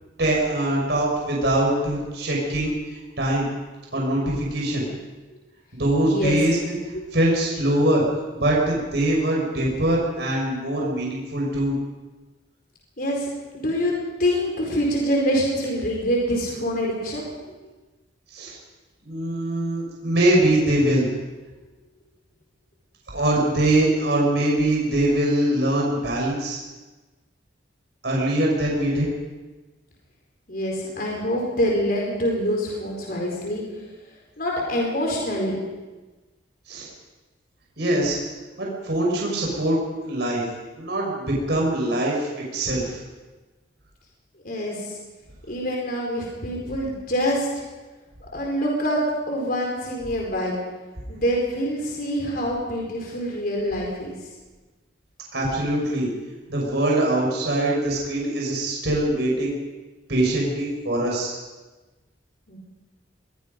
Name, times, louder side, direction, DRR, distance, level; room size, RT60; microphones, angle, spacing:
voice 1, 0.2-3.5 3.9-4.9 5.7-6.6 7.1-8.0 8.3-11.8 18.3-18.6 19.0-21.1 23.1-26.6 28.0-29.1 36.7-36.9 37.8-38.2 38.6-39.8 40.0-40.4 40.7-43.0 55.3-56.1 56.5-59.5 60.1-61.4, right 1 dB, 65° right, -3 dB, 5.9 m, -23 dB
voice 2, 6.0-6.4 6.9-7.0 13.0-13.3 13.5-13.9 14.2-17.3 30.5-33.6 34.4-35.6 44.4-45.0 45.5-47.5 48.2-49.0 49.3-50.6 51.1-54.1 62.5-62.6, equal, 50° left, -1 dB, 4.7 m, -25 dB
23.0 x 21.5 x 5.4 m, 1.2 s
head